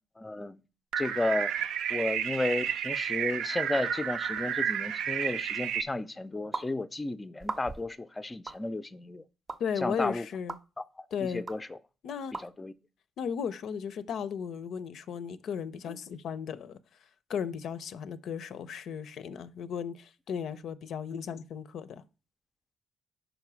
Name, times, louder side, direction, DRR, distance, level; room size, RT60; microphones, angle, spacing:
voice 1, 0.2-0.6 1.0-1.5 1.9-9.2 9.8-10.3 10.8-11.8 12.4-12.7, left 2 dB, 20° left, 0.4 m, -33 dB
sound 1, 0.9-5.8, right 8 dB, 80° right, 0.5 m, -31 dB
sound 2, 6.5-6.7 7.4-7.9 8.5-8.6 9.5-9.6 10.5-10.6 11.5-11.6 12.3-12.5, right 3 dB, 30° right, 0.6 m, -37 dB
voice 2, 9.6-10.6 11.1-11.5 12.0-12.3 13.2-16.8 17.3-22.0, left 7 dB, 70° left, 0.5 m, -35 dB
5.1 x 4.8 x 6.1 m
cardioid pair, 90°, 0 cm